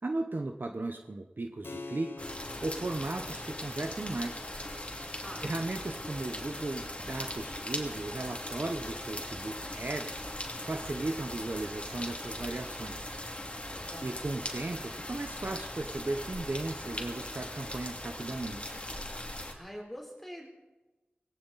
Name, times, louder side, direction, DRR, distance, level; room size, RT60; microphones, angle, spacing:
voice 1, 0.0-4.5 5.0-10.2 10.6-13.2 14.0-18.8, right 2 dB, 55° right, 5 dB, 1.0 m, -36 dB
Keyboard (musical), 1.6-11.8, left 3 dB, 70° left, 1.1 m, -51 dB
sound 1, 2.2-19.5, left 1 dB, 30° left, 2.6 m, -40 dB
voice 2, 13.7-14.3 19.5-20.5, equal, 5° left, -1 dB, 3.8 m, -45 dB
18.5 x 17.5 x 4.2 m, 1.1 s
wide cardioid pair, 45°, 4 cm